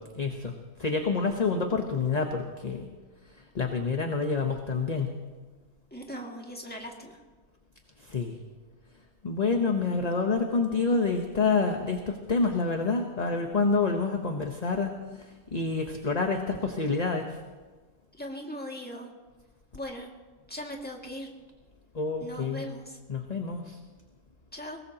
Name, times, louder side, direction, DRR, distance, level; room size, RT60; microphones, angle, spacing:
voice 1, 0.1-0.5 0.8-2.9 3.5-5.1 8.0-8.4 9.2-15.2 15.5-17.4 21.9-22.7 23.1-23.8, left 4 dB, 30° left, 4 dB, 1.0 m, -28 dB
voice 2, 5.9-7.2 18.1-19.1 19.7-20.1 20.5-21.3 22.2-23.0 24.5-24.8, equal, 5° left, 0 dB, 2.1 m, -39 dB
23.0 x 19.0 x 2.9 m, 1.3 s
omnidirectional pair, 1.6 m